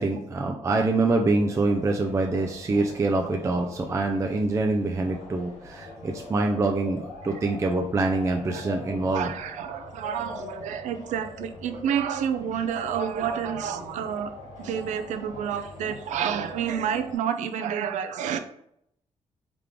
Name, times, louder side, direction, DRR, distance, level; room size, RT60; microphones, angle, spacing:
voice 1, 0.0-9.3, right 3 dB, 25° right, 2 dB, 0.4 m, -25 dB
sound 1, 1.3-17.2, left 2 dB, 85° left, 1.5 m, -43 dB
voice 2, 9.1-14.3 14.6-18.4, right 8 dB, 85° right, 8 dB, 0.4 m, -29 dB
3.6 x 3.3 x 3.6 m, 0.74 s
cardioid pair, 115°, 12 cm